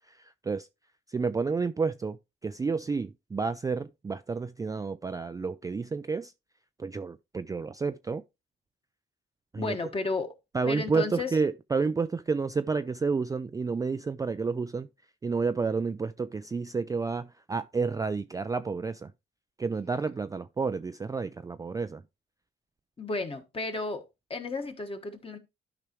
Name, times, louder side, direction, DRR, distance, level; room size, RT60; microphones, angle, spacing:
voice 1, 1.1-2.2 2.4-6.3 6.8-8.2 9.5-9.8 10.5-14.9 15.2-19.1 19.6-22.0, right 4 dB, 15° right, 0.3 m, -30 dB
voice 2, 9.6-10.3 10.6-11.3 23.0-25.4, left 3 dB, 30° left, 1.4 m, -33 dB
12.5 x 4.9 x 3.0 m
cardioid pair, 90°, 20 cm